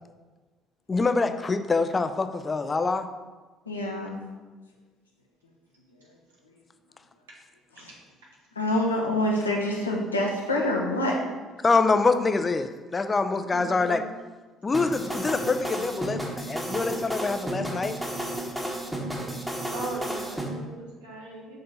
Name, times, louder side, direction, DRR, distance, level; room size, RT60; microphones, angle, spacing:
voice 1, 0.9-3.1 11.6-14.0 14.6-18.0, left 3 dB, 25° left, 9 dB, 0.6 m, -25 dB
voice 2, 3.7-4.2 7.8-7.9 8.6-11.2, left 1 dB, 90° left, -1 dB, 1.0 m, -26 dB
voice 3, 13.4-14.1 19.7-21.6, right 2 dB, 80° right, -4 dB, 1.7 m, -39 dB
sound 1, 14.7-20.5, right 1 dB, 10° right, 1.4 m, -32 dB
6.8 x 3.8 x 5.4 m, 1.3 s
figure-of-eight pair, 55°, 0 cm